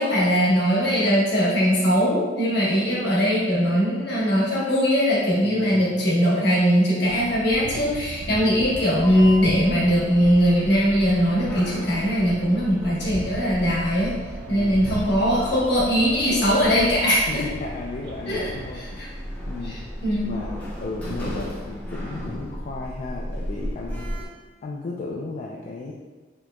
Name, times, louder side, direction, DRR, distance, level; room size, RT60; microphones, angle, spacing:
voice 1, 0.0-14.1 14.5-17.4 18.3-19.1 19.6-20.4, equal, 65° left, -6 dB, 1.1 m, -21 dB
voice 2, 5.4-6.1 8.2-8.6 14.5-15.0 17.3-19.8 20.2-20.5 20.8-24.1 24.6-25.9, left 3 dB, 45° left, -3 dB, 0.3 m, -35 dB
sound 1, 7.0-18.8, right 2 dB, 60° right, 0.3 m, -38 dB
Sliding door, 9.0-24.3, equal, 10° left, 0.8 m, -36 dB
4.3 x 2.9 x 2.2 m, 1.3 s
head